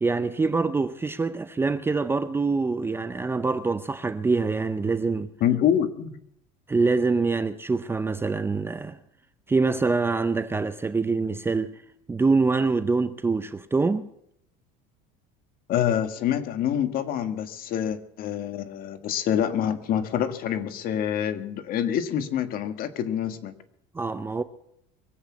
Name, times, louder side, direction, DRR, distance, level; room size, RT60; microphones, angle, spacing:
voice 1, 0.0-5.3 6.7-9.0 9.5-11.7 12.1-14.1 23.9-24.4, right 4 dB, 10° right, 0.6 m, -25 dB
voice 2, 5.4-6.2 15.7-23.5, left 9 dB, 50° left, 1.6 m, -26 dB
23.0 x 8.2 x 7.2 m
cardioid pair, 135°, 19 cm